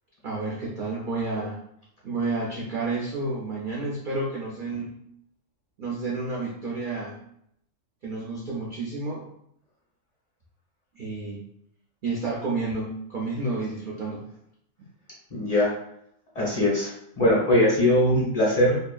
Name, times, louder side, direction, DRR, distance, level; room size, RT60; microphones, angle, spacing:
voice 1, 0.2-1.6 2.0-4.9 5.8-7.2 8.0-9.3 10.9-11.4 12.0-14.2, right 3 dB, 70° right, -4 dB, 0.5 m, -30 dB
voice 2, 15.3-15.7 16.3-18.8, left 1 dB, 30° left, -7 dB, 0.8 m, -21 dB
2.6 x 2.4 x 2.3 m, 0.74 s
omnidirectional pair, 1.4 m